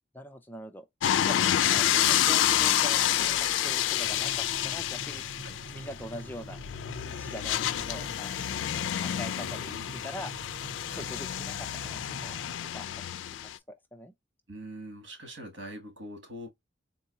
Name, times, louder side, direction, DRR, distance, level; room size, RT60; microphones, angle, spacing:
voice 1, 0.1-0.8 1.2-1.4 1.7-5.4 5.7-6.6 7.0-8.6 8.9-10.3 10.9-12.3 12.6-12.9 13.7-14.1, left 1 dB, 10° left, 0.5 m, -43 dB
sound 1, 1.0-13.6, left 11 dB, 80° left, 0.3 m, -29 dB
sound 2, 4.0-12.5, right 2 dB, 50° right, 0.5 m, -46 dB
voice 2, 14.5-16.5, equal, 80° right, 1.8 m, -43 dB
3.9 x 2.7 x 2.7 m
head